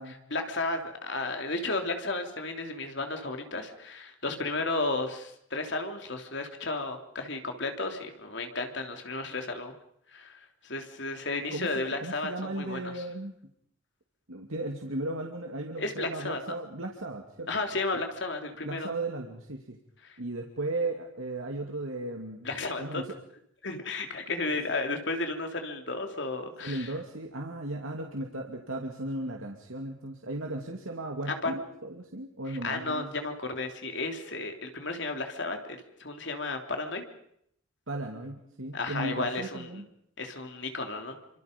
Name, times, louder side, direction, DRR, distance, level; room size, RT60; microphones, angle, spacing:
voice 1, 0.3-9.7 10.1-13.0 15.8-16.5 17.5-18.9 20.0-20.2 22.4-23.0 23.6-26.9 31.3-31.5 32.6-37.0 38.7-39.8 40.2-41.1, left 3 dB, 55° left, 5 dB, 3.4 m, -33 dB
voice 2, 11.5-13.3 14.3-17.5 18.6-19.8 20.2-22.5 22.8-23.1 26.6-33.1 37.9-39.8, right 2 dB, 80° right, 2 dB, 2.7 m, -36 dB
28.0 x 26.5 x 5.4 m, 0.72 s
head